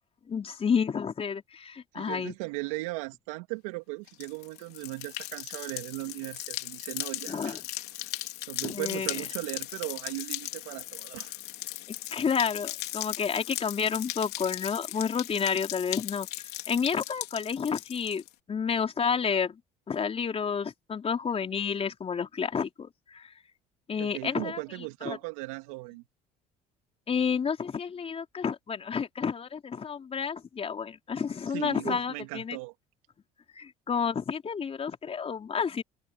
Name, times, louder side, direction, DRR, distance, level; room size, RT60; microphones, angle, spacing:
voice 1, 0.3-2.3 7.3-7.6 8.6-9.3 11.9-16.3 16.7-18.2 18.5-19.6 19.9-23.3 23.9-24.6 25.0-25.2 27.1-32.6 33.5-35.8, left 6 dB, 35° left, 4.2 m, -30 dB
voice 2, 1.9-7.6 8.0-8.2 8.5-11.4 24.0-26.0 31.5-32.7, right 24 dB, 85° right, 3.2 m, -37 dB
sound 1, 4.1-18.3, left 17 dB, 70° left, 4.1 m, -38 dB
supercardioid pair, 80°, 17 cm